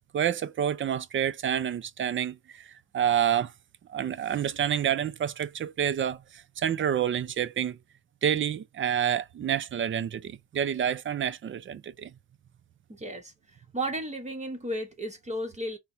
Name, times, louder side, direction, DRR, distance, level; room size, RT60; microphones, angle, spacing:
voice 1, 0.1-3.5 3.9-7.8 8.2-12.1, right 9 dB, 40° right, 0.5 m, -28 dB
voice 2, 12.9-13.3 13.7-15.8, right 1 dB, 25° right, 1.0 m, -33 dB
4.2 x 2.2 x 3.7 m
cardioid pair, 90°, 30 cm